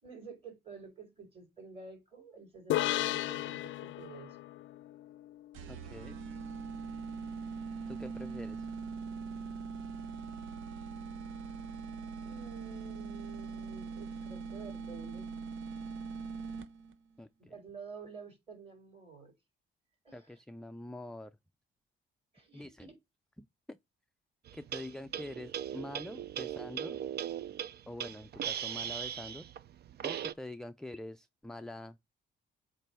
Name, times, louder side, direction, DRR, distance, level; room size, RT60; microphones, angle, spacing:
voice 1, 0.0-4.4 12.2-15.2 17.4-19.3 20.0-20.4 22.3-22.9, right 5 dB, 30° right, 4.2 m, -50 dB
sound 1, 2.7-6.2, left 15 dB, 75° left, 0.4 m, -35 dB
sound 2, 5.5-17.0, right 5 dB, 90° right, 0.8 m, -42 dB
voice 2, 5.7-6.2 7.9-8.7 17.2-17.5 20.1-21.4 22.5-22.9 23.4-23.8 24.5-27.0 27.9-29.5 30.0-32.0, left 1 dB, 5° left, 0.4 m, -45 dB
sound 3, 24.5-30.3, right 10 dB, 55° right, 0.5 m, -39 dB
7.7 x 2.6 x 5.5 m
cardioid pair, 90°, 20 cm